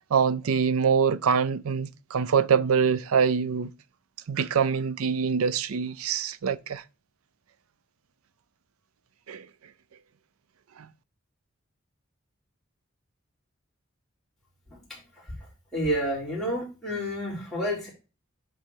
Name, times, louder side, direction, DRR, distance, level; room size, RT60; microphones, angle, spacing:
voice 1, 0.1-3.7 4.3-6.8 9.3-9.4, right 6 dB, 90° right, 0.5 m, -24 dB
voice 2, 14.7-15.0 15.3-15.4 15.7-17.9, equal, ahead, 3.9 m, -30 dB
10.0 x 3.9 x 4.7 m
head